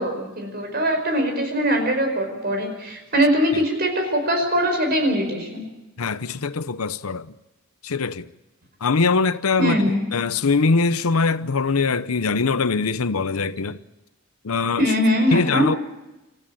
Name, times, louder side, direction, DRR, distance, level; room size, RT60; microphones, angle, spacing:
voice 1, 0.0-5.6 9.6-10.0 14.8-15.7, equal, 45° right, 5.3 m, -22 dB
voice 2, 6.0-7.3 7.8-8.3 8.8-9.8 10.1-13.8 14.4-14.9 15.3-15.8, left 4 dB, 90° left, 0.8 m, -22 dB
27.0 x 15.0 x 8.8 m
head